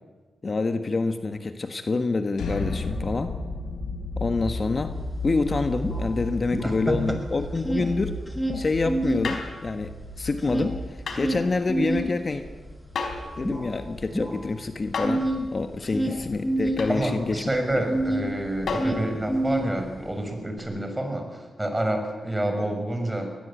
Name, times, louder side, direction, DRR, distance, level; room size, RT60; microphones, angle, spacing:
voice 1, 0.4-3.3 4.2-5.0 5.2-8.2 8.5-10.8 11.2-12.4 13.4-15.2 15.5-17.4, left 3 dB, 40° left, 8 dB, 1.4 m, -27 dB
sound 1, 2.3-14.2, left 2 dB, 90° left, 3.9 m, -34 dB
sound 2, 4.8-4.9 5.1-7.1 7.4-9.3 9.7-18.3 18.6-20.1, right 1 dB, 10° left, 5.1 m, -28 dB
voice 2, 6.6-7.2 16.9-23.3, right 1 dB, 15° right, 4 dB, 6.4 m, -28 dB
sound 3, 9.2-9.6 11.1-11.3 12.9-13.3 14.9-15.3 16.8-17.0 18.7-19.0 20.6-20.7, left 4 dB, 70° left, 4.3 m, -30 dB
22.5 x 18.5 x 8.8 m, 1.3 s
cardioid pair, 70°, 0 cm